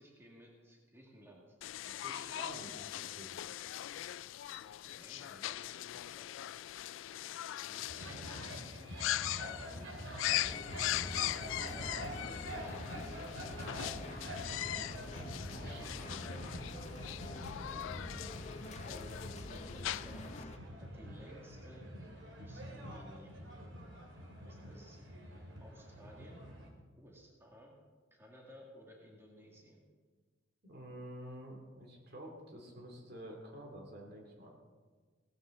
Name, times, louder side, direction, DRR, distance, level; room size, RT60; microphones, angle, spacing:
voice 1, 0.0-1.5 4.5-5.7 6.2-6.3 7.7-8.3 9.4-9.9 11.2-14.2 14.9-18.4 18.9-20.5 20.9-21.9 22.4-23.4 24.5-25.0 25.6-26.5 27.0-27.7 28.1-29.8, equal, 15° right, -2 dB, 2.1 m, -56 dB
sound 1, 1.6-20.4, left 14 dB, 85° left, 0.3 m, -41 dB
voice 2, 1.8-3.4 5.3-5.4 15.6-16.3 30.6-34.5, right 1 dB, 60° right, 1 dB, 2.7 m, -49 dB
sound 2, 7.9-26.7, equal, 85° right, 2.5 m, -46 dB
sound 3, 10.2-20.6, left 2 dB, 35° left, 0.8 m, -47 dB
17.5 x 13.5 x 3.8 m, 1.5 s
head